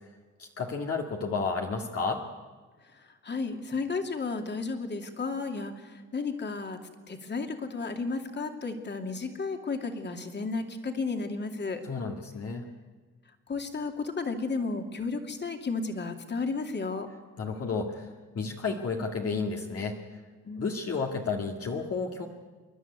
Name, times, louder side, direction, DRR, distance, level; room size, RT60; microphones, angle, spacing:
voice 1, 0.4-2.2 11.8-12.7 17.4-18.1 18.3-20.2 20.6-22.3, left 4 dB, 50° left, 0 dB, 2.1 m, -32 dB
voice 2, 3.2-6.8 7.1-11.8 13.5-17.1 20.5-20.8, left 4 dB, 35° left, 5 dB, 2.7 m, -33 dB
28.5 x 11.5 x 9.7 m, 1.4 s
cardioid pair, 90°, 30 cm